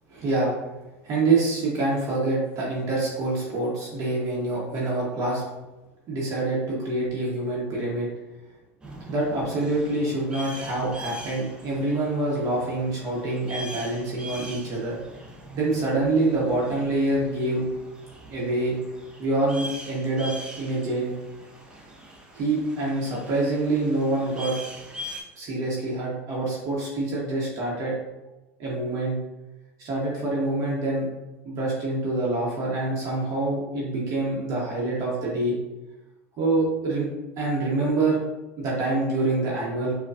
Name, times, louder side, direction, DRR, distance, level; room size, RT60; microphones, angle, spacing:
voice 1, 0.1-0.5 1.0-5.4 6.1-8.1 9.1-14.9 15.5-17.6 18.3-18.8 19.2-20.3 20.6-21.1 22.3-24.5 25.3-27.9 28.6-29.2 29.8-31.1 31.4-35.6 36.4-37.1 37.4-38.2 38.6-39.9, right 2 dB, 45° right, -5 dB, 0.9 m, -26 dB
sound 1, 8.8-25.2, equal, 10° right, 0.7 m, -42 dB
5.1 x 2.2 x 2.4 m, 1.1 s
hypercardioid pair, 95°, 8 cm